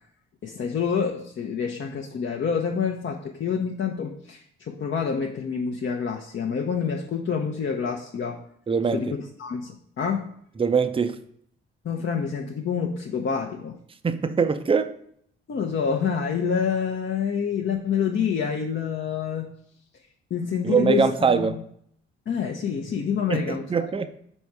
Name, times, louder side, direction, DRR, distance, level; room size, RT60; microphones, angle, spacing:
voice 1, 0.4-8.4 8.9-10.3 11.8-13.8 15.5-19.5 20.3-21.6 22.3-23.6, left 6 dB, 40° left, 1 dB, 0.7 m, -27 dB
voice 2, 8.7-9.0 10.6-11.2 14.0-14.9 20.6-21.6 23.3-24.1, right 5 dB, 20° right, 10 dB, 0.5 m, -22 dB
5.4 x 4.2 x 4.7 m, 0.67 s
hypercardioid pair, 45°, 29 cm